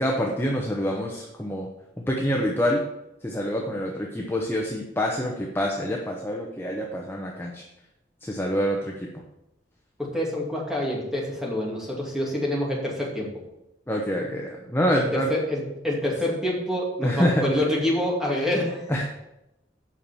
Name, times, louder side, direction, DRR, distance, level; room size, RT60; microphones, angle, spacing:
voice 1, 0.0-1.7 2.0-2.8 3.2-7.6 8.2-9.1 13.9-15.3 17.0-17.4 18.9-19.0, equal, 15° left, -1 dB, 1.0 m, -26 dB
voice 2, 10.0-13.3 14.9-18.9, left 1 dB, 5° right, -3 dB, 2.4 m, -27 dB
8.5 x 5.9 x 7.0 m, 0.90 s
head